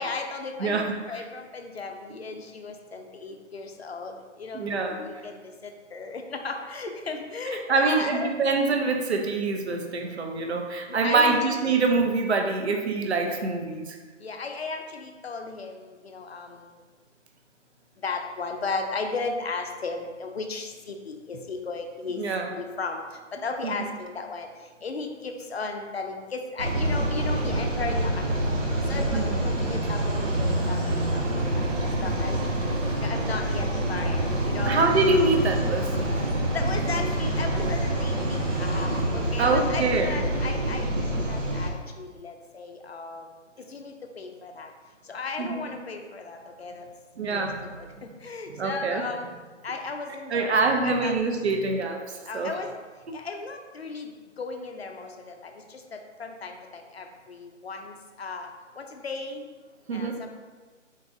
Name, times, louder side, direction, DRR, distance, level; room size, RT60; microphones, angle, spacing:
voice 1, 0.0-8.4 10.9-11.5 14.2-16.7 18.0-22.2 22.5-23.0 23.3-24.5 24.8-28.4 28.9-31.4 31.8-32.4 33.0-34.9 36.5-43.3 43.7-44.7 45.1-46.8 47.3-47.5 47.8-49.3 49.6-51.1 52.3-52.7 53.1-54.1 54.4-58.5 58.8-59.4 59.9-60.3, left 4 dB, 55° left, 4 dB, 0.5 m, -35 dB
voice 2, 0.6-1.0 4.5-5.0 7.7-14.0 22.2-22.5 23.6-23.9 29.1-29.4 34.7-36.2 39.4-40.2 45.4-45.7 47.2-47.7 48.5-49.1 50.3-52.5 59.9-60.2, right 3 dB, 60° right, 3 dB, 0.6 m, -25 dB
sound 1, 26.6-41.7, right 1 dB, 85° right, 1.1 m, -26 dB
4.0 x 3.6 x 2.6 m, 1.4 s
hypercardioid pair, 175°, 38 cm